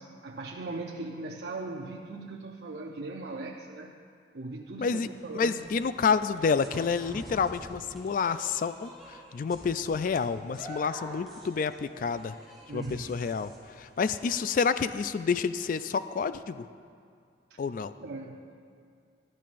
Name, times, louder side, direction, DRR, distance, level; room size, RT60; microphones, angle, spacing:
voice 1, 0.0-3.9 4.3-5.6 12.7-13.2 17.5-17.6 18.0-18.5, right 3 dB, 70° right, -1 dB, 0.6 m, -39 dB
sound 1, 5.1-15.1, equal, ahead, 2.8 m, -48 dB
voice 2, 5.3-12.4 12.7-16.7 17.6-17.9, left 5 dB, 50° left, 13 dB, 0.3 m, -29 dB
16.5 x 12.5 x 2.5 m, 2.3 s
head